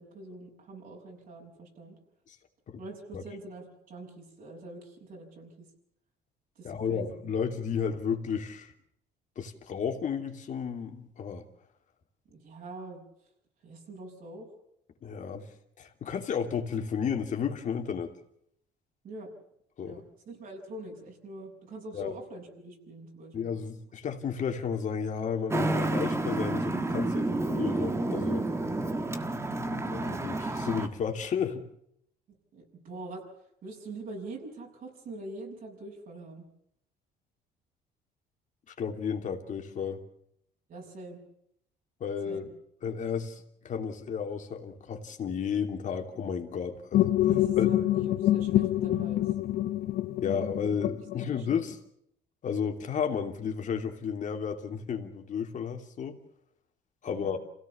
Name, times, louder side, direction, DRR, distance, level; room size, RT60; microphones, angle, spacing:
voice 1, 0.0-2.0 2.8-5.7 6.6-7.2 12.3-13.0 13.6-14.5 19.0-19.3 19.8-23.5 29.0-29.3 32.5-33.3 33.6-36.5 40.7-41.2 42.3-42.5 47.3-49.3 50.9-51.7 57.1-57.4, right 2 dB, 55° right, 0 dB, 6.9 m, -44 dB
voice 2, 6.6-8.7 9.4-11.4 15.0-15.5 15.8-18.1 19.8-20.0 21.9-22.1 23.3-28.5 29.7-31.7 38.7-40.0 42.0-42.5 42.8-47.0 47.6-47.7 50.2-51.8 52.4-56.2 57.0-57.4, left 7 dB, 50° left, 4 dB, 2.9 m, -32 dB
Traffic noise roadway noise, 25.5-30.9, right 2 dB, 15° right, 1.6 m, -30 dB
sound 1, 46.9-51.7, left 13 dB, 65° left, 0.8 m, -26 dB
27.5 x 17.0 x 7.2 m, 0.74 s
cardioid pair, 110°, 17 cm